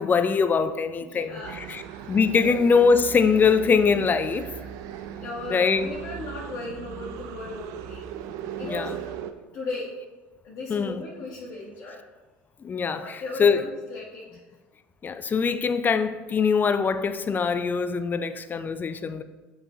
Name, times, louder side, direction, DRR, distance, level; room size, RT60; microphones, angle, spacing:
voice 1, 0.0-1.8 2.1-4.5 5.5-5.9 8.6-9.0 10.7-11.0 12.6-13.6 15.0-19.2, left 5 dB, 30° left, 0.4 m, -23 dB
voice 2, 1.1-2.0 2.4-2.6 5.2-8.0 8.6-9.0 9.5-9.9 10.4-12.0 13.0-14.4, left 3 dB, 55° left, 1.4 m, -37 dB
sound 1, 1.4-9.3, right 10 dB, 65° right, 0.4 m, -38 dB
7.5 x 4.7 x 3.0 m
hypercardioid pair, 75°, 6 cm